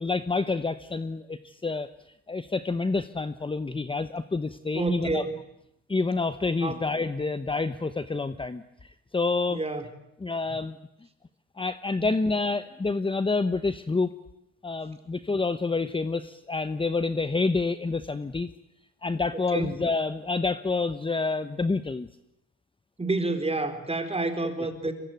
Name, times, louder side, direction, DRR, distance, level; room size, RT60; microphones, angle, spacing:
voice 1, 0.0-1.9 2.3-5.2 5.9-9.6 10.2-10.8 11.6-14.1 14.6-18.5 19.0-22.1, left 3 dB, 15° left, 11 dB, 1.0 m, -28 dB
voice 2, 4.7-5.4 6.6-6.8 9.5-9.8 12.0-12.1 19.5-19.7 23.0-24.9, right 2 dB, 20° right, 6 dB, 4.5 m, -28 dB
23.5 x 23.5 x 9.3 m, 0.80 s
cardioid pair, 90°, 30 cm